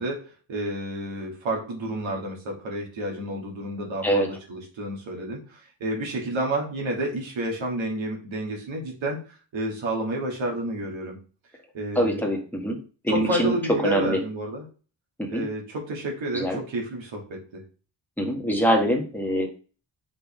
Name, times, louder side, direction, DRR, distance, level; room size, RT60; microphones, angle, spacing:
voice 1, 0.0-9.2 9.5-11.2 11.7-12.3 13.1-14.7 15.3-17.6, right 1 dB, 80° right, 0 dB, 2.7 m, -30 dB
voice 2, 11.9-12.8 13.0-13.5 13.8-14.2 15.2-15.4 16.3-16.6 18.2-19.5, equal, 5° left, 0 dB, 1.4 m, -24 dB
6.3 x 5.2 x 3.7 m, 0.36 s
wide cardioid pair, 180°, 46 cm